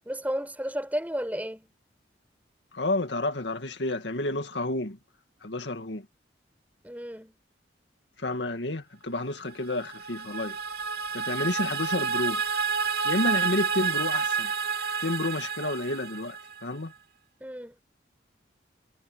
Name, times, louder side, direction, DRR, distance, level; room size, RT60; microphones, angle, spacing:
voice 1, 0.1-1.7 6.8-7.3 17.4-17.8, equal, 10° right, 5.8 m, -33 dB
voice 2, 2.7-5.0 5.4-6.1 8.2-10.6 11.1-12.4 13.0-14.5 15.0-16.9, left 2 dB, 80° left, 2.2 m, -30 dB
sound 1, 9.6-16.7, right 6 dB, 55° right, 2.7 m, -29 dB
head